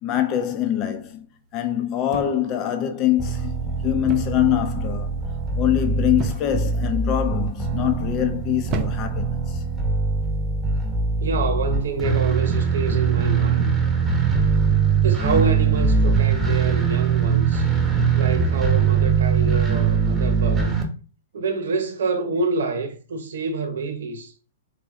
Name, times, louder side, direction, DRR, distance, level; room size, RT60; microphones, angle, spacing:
voice 1, 0.0-1.3 1.5-5.1 5.5-9.6, left 12 dB, 30° left, 0.7 m, -24 dB
sound 1, 2.1-2.6 4.1-4.5 4.8-5.2 6.2-6.7 7.4-7.8 8.6-9.3 10.2-10.5, right 5 dB, 30° right, 0.5 m, -32 dB
sound 2, 3.2-20.8, right 6 dB, 10° right, 1.2 m, -22 dB
voice 2, 11.2-13.8 15.0-17.7 18.1-20.7 21.3-24.3, right 4 dB, 75° right, 0.9 m, -26 dB
3.6 x 3.3 x 3.6 m
hypercardioid pair, 140°, 0 cm